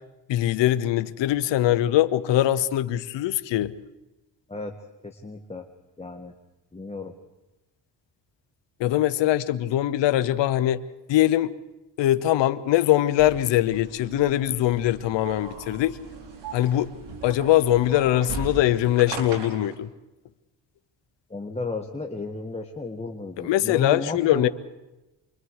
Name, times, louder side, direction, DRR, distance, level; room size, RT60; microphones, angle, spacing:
voice 1, 0.3-3.7 8.8-10.8 11.1-11.5 12.0-16.0 16.5-16.9 17.2-19.9 23.4-24.5, left 13 dB, 90° left, 14 dB, 1.0 m, -22 dB
voice 2, 5.0-5.6 6.0-6.3 6.7-7.1 21.3-24.5, left 3 dB, 15° left, 3 dB, 1.7 m, -33 dB
sound 1, 13.2-19.7, right 4 dB, 85° right, 4.6 m, -38 dB
28.0 x 23.5 x 4.8 m, 1.0 s
cardioid pair, 90°, 42 cm